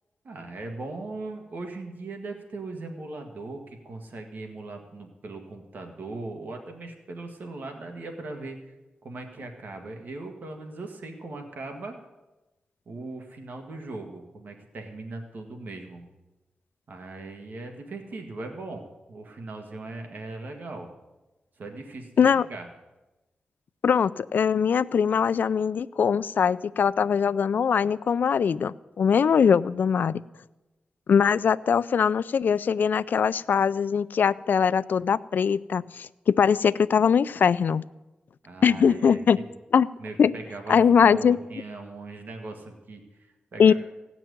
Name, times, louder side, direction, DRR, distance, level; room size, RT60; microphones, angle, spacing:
voice 1, 0.2-8.6 9.0-12.0 12.8-16.0 16.9-20.9 21.6-22.7 38.4-39.5 40.0-43.7, right 2 dB, 65° right, 3 dB, 1.7 m, -39 dB
voice 2, 23.8-30.2 31.1-37.8 38.6-39.4 39.7-39.9 40.2-40.3 40.7-41.4 43.6-43.7, left 7 dB, 65° left, 17 dB, 0.4 m, -21 dB
16.5 x 6.0 x 9.3 m, 1.1 s
wide cardioid pair, 130°, 3 cm